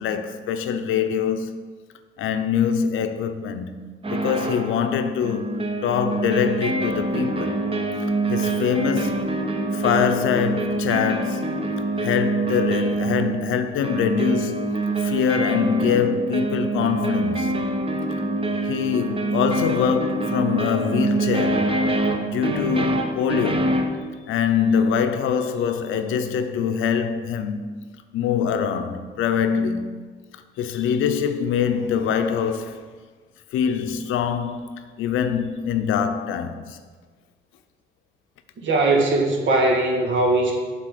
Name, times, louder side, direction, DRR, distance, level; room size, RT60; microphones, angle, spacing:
voice 1, 0.0-1.5 2.2-3.8 4.1-7.6 8.3-9.3 9.7-11.7 12.0-14.6 15.0-17.6 18.6-21.8 22.2-23.7 24.3-27.7 28.1-30.0 30.3-32.8 33.5-36.8, left 7 dB, 85° left, 0.6 m, -24 dB
sound 1, 4.0-4.7 5.2-24.0, right 2 dB, 30° right, 0.8 m, -25 dB
voice 2, 38.6-40.6, right 2 dB, 70° right, 1.6 m, -20 dB
7.6 x 4.0 x 6.5 m
cardioid pair, 90°, 20 cm